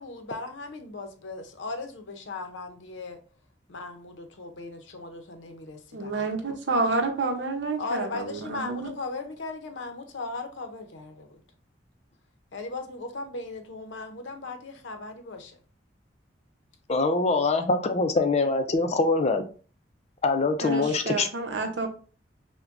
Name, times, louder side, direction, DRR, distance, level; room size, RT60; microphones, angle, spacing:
voice 1, 0.0-3.2 3.7-6.8 7.8-11.3 12.5-15.6, left 3 dB, 85° left, 0.7 m, -38 dB
voice 2, 5.9-8.8 20.6-21.9, right 3 dB, 70° right, 0.8 m, -29 dB
voice 3, 16.9-19.4 20.2-21.3, left 3 dB, 35° left, 0.5 m, -24 dB
5.8 x 2.2 x 2.5 m
head